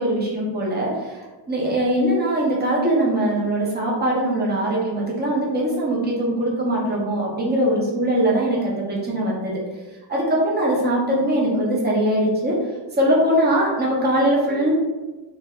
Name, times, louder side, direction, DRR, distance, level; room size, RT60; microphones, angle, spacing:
voice 1, 0.0-9.6 10.1-12.6 13.0-14.7, right 1 dB, 20° right, -4 dB, 0.8 m, -21 dB
3.1 x 2.4 x 3.7 m, 1.2 s
wide cardioid pair, 135°, 45 cm